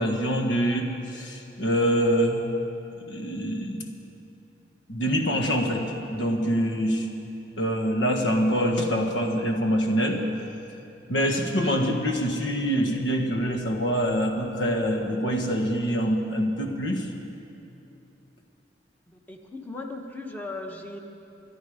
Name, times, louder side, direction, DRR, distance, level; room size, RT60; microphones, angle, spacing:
voice 1, 0.0-2.4 3.1-3.8 4.9-7.1 7.6-10.3 11.1-17.1, equal, 80° left, 3 dB, 1.6 m, -25 dB
voice 2, 19.1-21.0, left 2 dB, 10° left, 2 dB, 1.1 m, -37 dB
25.0 x 10.5 x 5.1 m, 2.9 s
head